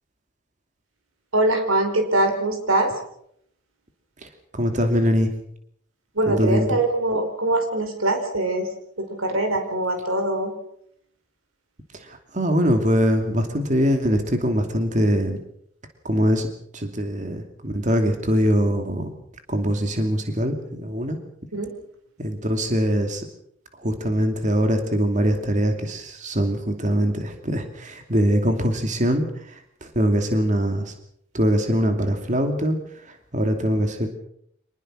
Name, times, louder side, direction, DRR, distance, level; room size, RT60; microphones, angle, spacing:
voice 1, 1.3-2.9 6.1-10.6 21.5-21.8, right 2 dB, 85° right, 6 dB, 4.9 m, -23 dB
voice 2, 4.2-5.3 6.3-6.8 11.9-15.4 16.0-16.5 16.7-19.1 19.5-21.2 22.2-23.2 23.8-30.9 31.3-32.8 33.0-34.1, equal, 35° right, 6 dB, 2.7 m, -22 dB
25.5 x 20.0 x 6.4 m, 0.71 s
head